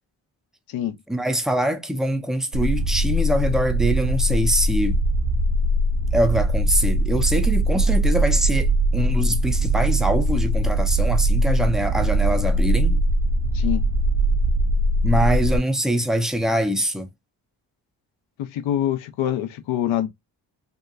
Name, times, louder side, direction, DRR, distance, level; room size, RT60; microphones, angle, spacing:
voice 1, 1.1-5.0 6.1-13.0 15.0-17.1, equal, ahead, 0.5 m, -23 dB
sound 1, 2.5-15.6, right 1 dB, 60° right, 0.6 m, -21 dB
voice 2, 18.4-20.1, left 11 dB, 70° left, 0.7 m, -25 dB
3.0 x 2.1 x 2.3 m
supercardioid pair, 40°, 49 cm